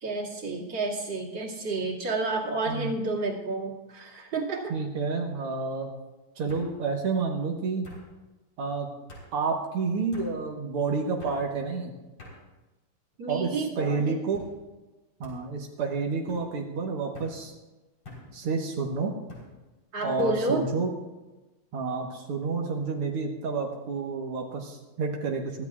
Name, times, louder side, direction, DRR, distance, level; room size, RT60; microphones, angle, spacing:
voice 1, 0.0-4.7 13.2-14.2 19.9-20.6, right 3 dB, 55° right, -3 dB, 3.0 m, -30 dB
sound 1, 3.3-3.4 3.8-4.3 5.4-5.5 6.5-6.7 7.8-8.0 9.1-9.3 10.1-10.3 11.2-11.4 12.2-12.4 13.1-13.5 14.3-14.5 15.2-15.4 16.3-16.4 17.1-17.4 18.0-18.3 19.3-19.5 20.2-20.4, left 1 dB, 70° left, 4.8 m, -46 dB
voice 2, 4.7-5.9 6.4-7.9 8.6-8.9 9.3-11.9 13.3-14.4 15.2-17.5 18.3-19.1 20.0-20.9 21.7-25.6, right 4 dB, 90° right, 0 dB, 2.2 m, -29 dB
23.0 x 14.0 x 2.4 m, 1.1 s
omnidirectional pair, 2.4 m